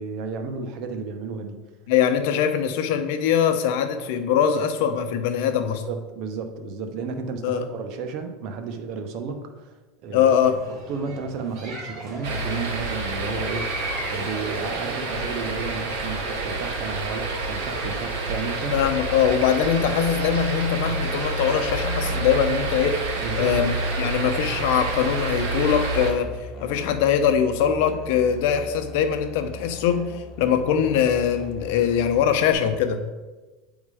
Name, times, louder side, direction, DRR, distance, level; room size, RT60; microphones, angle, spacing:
voice 1, 0.0-1.6 5.6-10.3 10.9-13.8 14.1-18.8 23.2-23.6, right 5 dB, 55° right, 6 dB, 0.9 m, -33 dB
voice 2, 1.9-5.8 7.4-7.6 10.1-10.6 18.7-23.0 23.4-26.3 26.6-33.0, left 8 dB, 70° left, 8 dB, 0.7 m, -22 dB
sound 1, 10.4-25.8, right 2 dB, 40° right, 1.6 m, -40 dB
sound 2, 12.2-26.1, right 3 dB, 75° right, 1.6 m, -28 dB
Musical instrument, 25.7-32.5, left 2 dB, 30° left, 1.3 m, -41 dB
8.5 x 3.6 x 4.9 m, 1.2 s
supercardioid pair, 145°, 0 cm